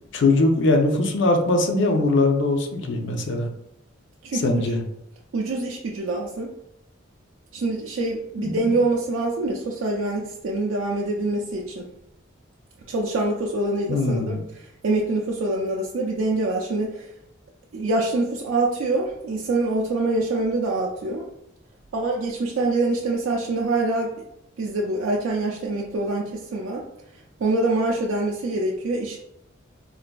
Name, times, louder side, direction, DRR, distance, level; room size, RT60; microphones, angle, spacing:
voice 1, 0.1-3.5 4.3-4.8 8.4-8.6 13.9-14.4, left 2 dB, 60° left, 4 dB, 0.5 m, -21 dB
voice 2, 4.2-4.8 5.3-6.5 7.5-11.9 12.9-17.1 17.7-21.2 21.9-24.2 24.6-26.8 27.4-29.2, right 2 dB, 80° right, -1 dB, 0.4 m, -25 dB
3.8 x 2.4 x 2.2 m, 0.81 s
head